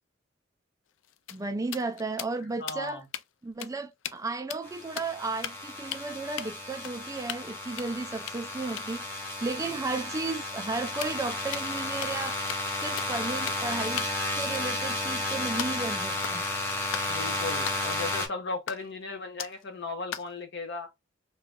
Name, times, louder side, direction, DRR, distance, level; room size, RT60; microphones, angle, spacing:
sound 1, 0.9-3.3 3.6-3.7 4.0-4.2 4.5-5.1 5.4-5.7 5.9-6.0 6.4-6.5 6.8-7.5 7.8-11.8 12.0-12.2 12.5-12.7 13.0-13.1 13.5-13.7 14.0-15.9 16.2-16.5 16.9-17.1 17.6-17.8 18.7-19.0 19.4-19.6 20.1-20.4, left 10 dB, 80° left, 0.4 m, -39 dB
voice 1, 1.3-3.0 3.4-9.1 9.4-12.5 12.8-14.1 14.4-16.4, right 3 dB, 20° right, 0.3 m, -34 dB
voice 2, 2.6-3.0 9.7-9.8 17.1-20.9, left 3 dB, 65° left, 1.1 m, -36 dB
sound 2, 4.6-18.3, left 2 dB, 10° left, 0.9 m, -33 dB
2.8 x 2.2 x 3.6 m
head